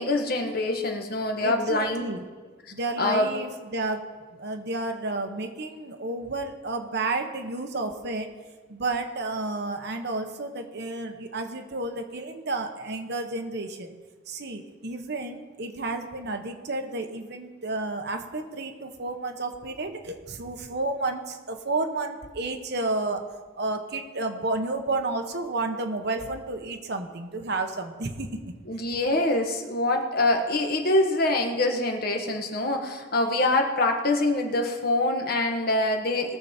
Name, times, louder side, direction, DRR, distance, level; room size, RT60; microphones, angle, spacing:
voice 1, 0.0-2.0 2.6-3.3 28.7-36.4, left 2 dB, 50° left, 3 dB, 1.4 m, -25 dB
voice 2, 1.4-2.2 2.7-4.1 4.4-8.3 8.7-14.0 14.3-23.3 23.5-28.4, right 2 dB, 55° right, 5 dB, 1.1 m, -31 dB
20.0 x 7.0 x 4.4 m, 1.4 s
head